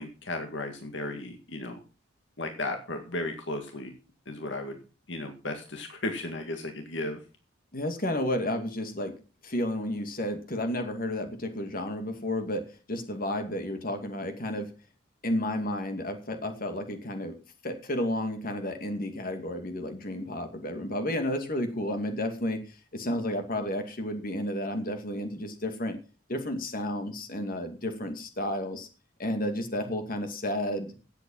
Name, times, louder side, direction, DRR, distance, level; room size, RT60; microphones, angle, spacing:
voice 1, 0.0-1.8 2.4-3.9 4.3-4.8 5.1-7.2, left 2 dB, 65° left, 5 dB, 2.1 m, -35 dB
voice 2, 7.7-9.1 9.4-14.7 15.2-17.4 17.6-22.6 22.9-26.0 26.3-28.9 29.2-30.9, left 1 dB, 45° left, 6 dB, 2.5 m, -32 dB
16.5 x 8.3 x 5.6 m, 0.35 s
head